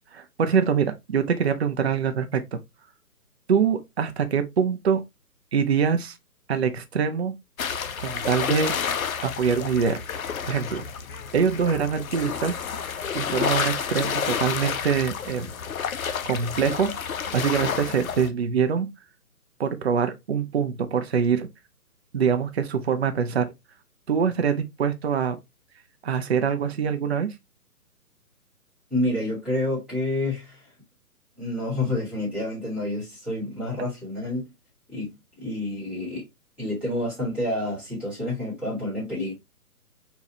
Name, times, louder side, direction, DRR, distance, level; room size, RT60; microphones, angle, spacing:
voice 1, 0.1-2.6 3.5-5.0 5.5-6.2 6.5-7.3 8.0-8.7 9.2-10.0 10.5-10.8 11.3-12.6 13.1-15.5 16.2-16.9 17.3-18.9 19.6-21.5 22.1-23.5 24.1-25.4 26.0-27.3, right 6 dB, 45° right, 0.5 m, -24 dB
sound 1, 7.6-18.3, left 7 dB, 65° left, 0.6 m, -30 dB
voice 2, 28.9-30.6 31.4-34.5 34.9-35.1 35.4-36.2 36.6-39.3, left 1 dB, 5° right, 1.5 m, -28 dB
4.1 x 2.3 x 2.7 m
figure-of-eight pair, 140°, 46 cm